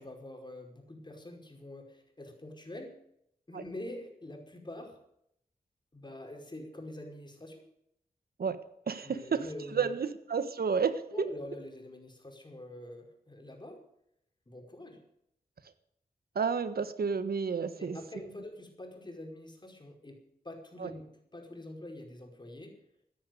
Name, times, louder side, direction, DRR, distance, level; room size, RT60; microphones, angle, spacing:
voice 1, 0.0-3.0 3.5-5.0 5.9-7.6 9.0-9.9 11.1-13.8 14.5-15.0 17.8-20.2 20.4-22.7, left 1 dB, 30° left, 2 dB, 5.1 m, -45 dB
voice 2, 8.9-11.3 16.3-18.0 20.8-20.9, right 6 dB, 75° right, 11 dB, 1.4 m, -31 dB
14.5 x 10.0 x 9.3 m, 0.75 s
cardioid pair, 60°, 16 cm